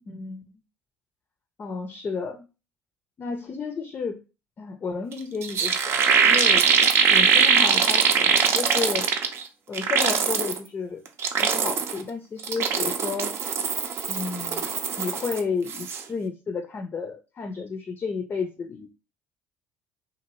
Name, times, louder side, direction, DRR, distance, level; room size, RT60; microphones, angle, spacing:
voice 1, 0.1-0.4 1.6-2.5 3.2-4.2 4.6-6.6 7.1-9.1 9.7-11.0 11.4-13.3 14.1-14.7 15.0-18.9, left 5 dB, 35° left, 6 dB, 0.5 m, -32 dB
sound 1, 5.1-5.2 5.4-9.4 9.7-10.6 11.1-12.0 12.4-15.4 15.7-16.0, right 6 dB, 55° right, 0.6 m, -21 dB
2.7 x 2.5 x 3.0 m, 0.31 s
hypercardioid pair, 70°, 5 cm